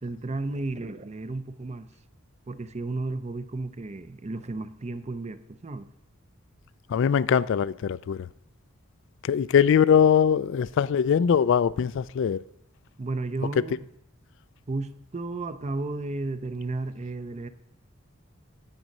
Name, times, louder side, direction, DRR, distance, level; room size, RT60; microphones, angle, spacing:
voice 1, 0.0-1.9 2.5-5.9 13.0-13.8 14.7-17.5, right 2 dB, 35° right, 0.6 m, -33 dB
voice 2, 6.9-8.3 9.2-12.4, left 7 dB, 60° left, 0.3 m, -22 dB
9.1 x 8.2 x 5.3 m
head